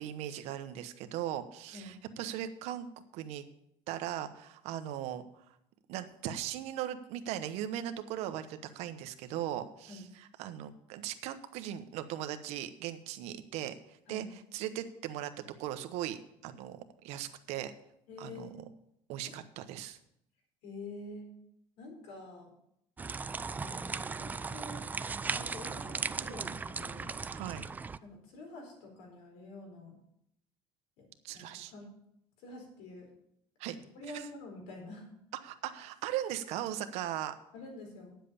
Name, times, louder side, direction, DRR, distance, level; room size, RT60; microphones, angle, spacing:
voice 1, 0.0-2.9 3.1-3.4 3.9-5.4 5.9-10.0 10.4-14.2 14.5-15.3 15.6-17.7 18.2-18.5 19.1-20.0 27.3-27.6 31.2-31.7 33.6-33.8 34.1-34.2 35.4-37.3, right 11 dB, 75° right, 10 dB, 1.0 m, -38 dB
voice 2, 18.1-18.6 20.6-21.3 21.8-22.5 23.5-24.8 25.3-27.1 28.0-30.0 31.0-31.1 31.3-31.9 32.4-33.1 33.9-35.1 37.5-38.1, left 2 dB, 90° left, 2 dB, 4.3 m, -47 dB
sound 1, 23.0-28.0, right 4 dB, 15° right, 0.3 m, -37 dB
10.0 x 7.5 x 6.9 m, 0.76 s
cardioid pair, 140°, 11 cm